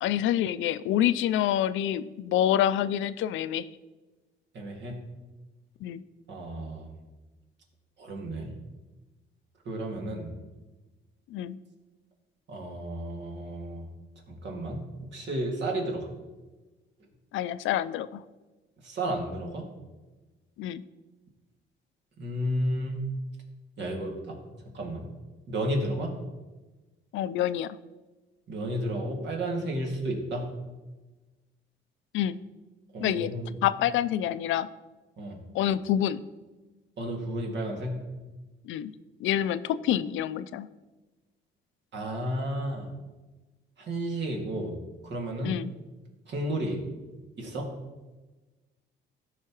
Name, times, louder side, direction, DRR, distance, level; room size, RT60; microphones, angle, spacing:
voice 1, 0.0-3.7 5.8-6.0 11.3-11.6 17.3-18.2 20.6-20.8 27.1-27.8 32.1-32.4 33.0-33.3 33.6-34.7 35.5-36.2 38.6-38.9 39.2-40.7 45.4-45.7, left 11 dB, 80° left, 15 dB, 0.4 m, -27 dB
voice 2, 4.5-5.0 6.3-6.9 8.0-8.5 9.7-10.3 12.5-13.9 14.3-16.1 18.8-19.7 22.2-23.1 23.8-24.4 24.7-25.1 25.5-26.1 28.5-30.5 32.9-33.6 35.2-35.4 37.0-37.9 41.9-42.9 43.8-45.6 46.3-46.8 47.4-47.7, right 1 dB, 65° right, 0 dB, 2.1 m, -32 dB
13.5 x 5.6 x 3.0 m, 1.2 s
cardioid pair, 90°, 20 cm